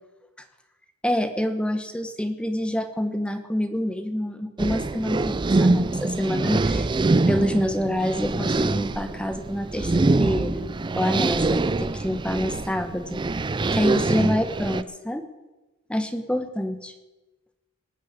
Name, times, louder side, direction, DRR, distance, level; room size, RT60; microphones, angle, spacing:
voice 1, 1.0-6.9 7.3-10.7 11.0-13.2 13.7-15.3 15.9-16.9, equal, 5° left, 8 dB, 0.9 m, -27 dB
sound 1, 4.6-14.8, right 3 dB, 20° right, 0.4 m, -24 dB
19.0 x 6.4 x 8.9 m, 1.1 s
head